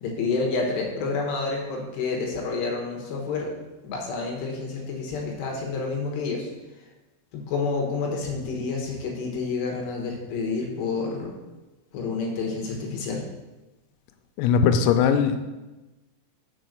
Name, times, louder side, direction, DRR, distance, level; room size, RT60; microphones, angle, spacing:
voice 1, 0.0-3.5 3.8-6.5 7.3-11.3 11.9-13.2, left 4 dB, 70° left, 0 dB, 2.8 m, -29 dB
voice 2, 14.4-15.4, left 7 dB, 85° left, 8 dB, 3.3 m, -20 dB
7.2 x 5.4 x 6.3 m, 1.1 s
omnidirectional pair, 5.9 m